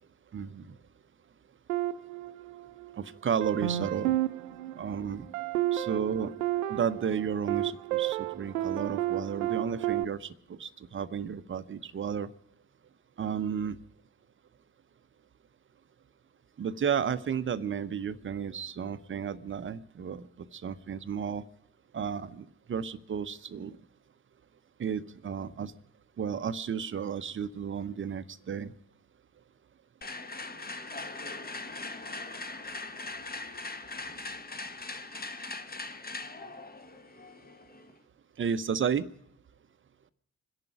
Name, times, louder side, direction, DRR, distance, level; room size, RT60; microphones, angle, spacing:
voice 1, 0.3-0.7 3.0-4.1 4.8-5.3 5.7-6.3 6.7-12.3 13.2-13.8 16.6-20.2 20.5-21.4 21.9-23.7 24.8-25.7 26.2-28.7 38.4-39.1, right 7 dB, 25° right, 14 dB, 0.9 m, -33 dB
sound 1, 1.7-3.0 3.4-10.0, right 14 dB, 75° right, 0.7 m, -32 dB
sound 2, 30.0-38.0, left 3 dB, 20° left, 1.4 m, -40 dB
26.0 x 11.0 x 4.8 m, 0.75 s
figure-of-eight pair, 50°, 44 cm